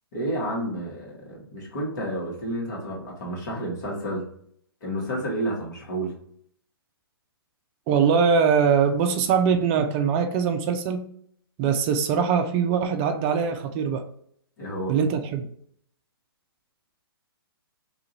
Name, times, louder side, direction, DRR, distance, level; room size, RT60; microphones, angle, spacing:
voice 1, 0.1-4.2 4.8-6.1 14.6-14.9, right 1 dB, 45° left, 1.3 m, -30 dB
voice 2, 7.9-11.1 11.6-14.0 14.9-15.5, right 6 dB, 30° right, 0.4 m, -22 dB
2.7 x 2.4 x 2.9 m
figure-of-eight pair, 125°, 13 cm